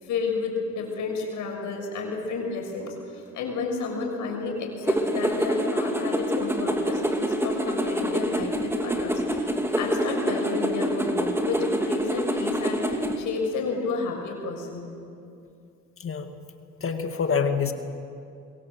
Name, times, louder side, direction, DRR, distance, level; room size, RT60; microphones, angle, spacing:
voice 1, 0.0-14.9, left 4 dB, 85° left, 1 dB, 6.3 m, -31 dB
sound 1, 4.9-13.2, equal, 10° right, 2.8 m, -26 dB
voice 2, 16.0-16.3 16.8-17.7, left 6 dB, 45° left, 6 dB, 2.1 m, -26 dB
25.5 x 22.5 x 7.9 m, 2.5 s
cardioid pair, 90°, 30 cm